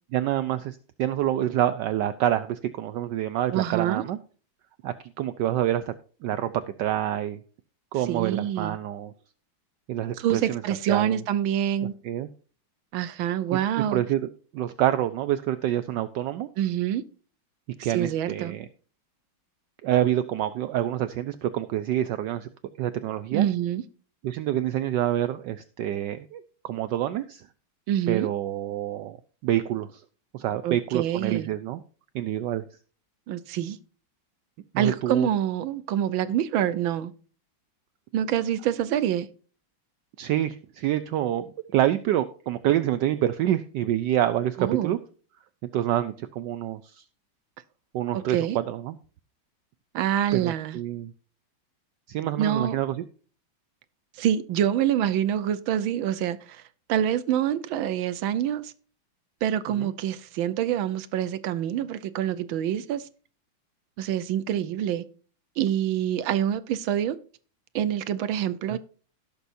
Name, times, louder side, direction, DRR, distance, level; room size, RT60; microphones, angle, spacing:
voice 1, 0.1-4.2 4.8-5.9 6.2-6.5 6.8-7.4 7.9-9.1 9.9-10.6 10.9-11.2 12.0-12.3 13.9-14.3 14.5-16.5 17.8-18.7 19.8-22.5 22.8-23.5 24.2-27.4 28.1-29.2 29.4-30.0 30.3-31.8 32.1-32.6 34.7-35.3 40.2-45.0 45.6-47.0 47.9-48.9 50.3-51.1 52.1-53.0 59.8-59.9 68.7-68.8, right 12 dB, 70° right, 1.2 m, -27 dB
voice 2, 3.5-4.0 8.1-8.8 10.2-11.9 12.9-14.0 16.6-17.0 17.8-18.6 23.3-23.8 27.9-28.3 30.6-31.5 33.3-33.8 34.8-37.1 38.1-39.3 44.6-45.0 48.1-48.6 49.9-50.8 52.4-52.8 54.2-56.6 56.9-58.7 59.4-63.1 64.0-65.0 65.6-67.2 67.7-68.8, right 10 dB, 90° right, 1.6 m, -26 dB
17.5 x 6.9 x 2.6 m
omnidirectional pair, 2.1 m